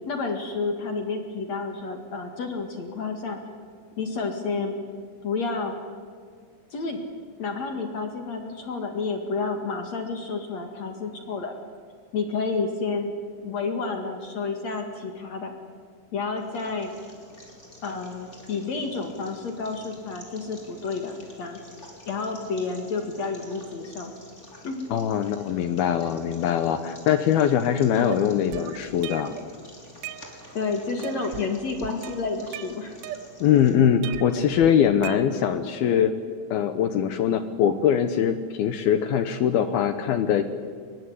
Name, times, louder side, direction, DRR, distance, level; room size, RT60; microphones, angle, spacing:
voice 1, 0.1-3.4 4.0-4.8 5.2-5.8 6.7-7.0 7.4-11.5 12.1-13.1 13.4-15.5 16.1-16.9 17.8-21.6 22.0-24.1 24.6-24.9 30.5-33.0, left 4 dB, 50° left, 5 dB, 2.4 m, -30 dB
sound 1, 16.3-33.7, left 1 dB, 15° left, 4.1 m, -48 dB
voice 2, 24.9-29.3 33.4-36.1 36.5-40.4, left 9 dB, 75° left, 10 dB, 2.4 m, -22 dB
sound 2, 28.1-29.5 29.8-30.7 31.0-31.5 31.8-33.6 34.0-35.7, right 12 dB, 75° right, 2.9 m, -38 dB
23.5 x 22.0 x 9.8 m, 2.1 s
omnidirectional pair, 5.4 m